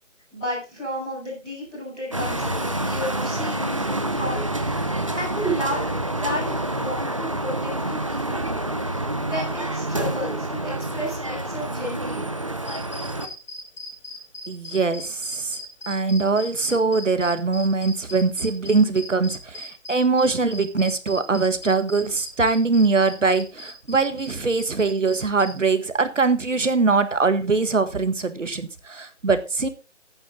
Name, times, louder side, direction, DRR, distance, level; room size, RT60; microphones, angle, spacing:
voice 1, 0.3-4.8 5.1-8.5 8.8-12.4, equal, ahead, 0.9 m, -32 dB
sound 1, 2.1-13.3, right 1 dB, 25° right, 0.8 m, -27 dB
sound 2, 12.7-25.5, left 2 dB, 65° left, 4.9 m, -38 dB
voice 2, 14.5-15.6 15.9-29.7, right 4 dB, 75° right, 1.7 m, -22 dB
14.0 x 9.1 x 3.8 m
figure-of-eight pair, 165°, 38 cm